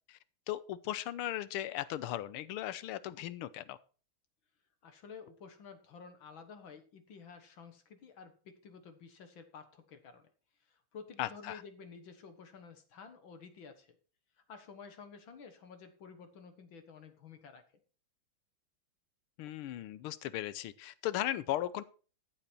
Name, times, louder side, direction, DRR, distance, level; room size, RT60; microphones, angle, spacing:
voice 1, 0.5-3.8 11.2-11.6 19.4-21.8, left 13 dB, 90° left, 1.6 m, -37 dB
voice 2, 4.8-10.3 10.6-14.0 14.5-17.6, left 5 dB, 65° left, 2.1 m, -52 dB
13.5 x 7.9 x 4.4 m
omnidirectional pair, 2.4 m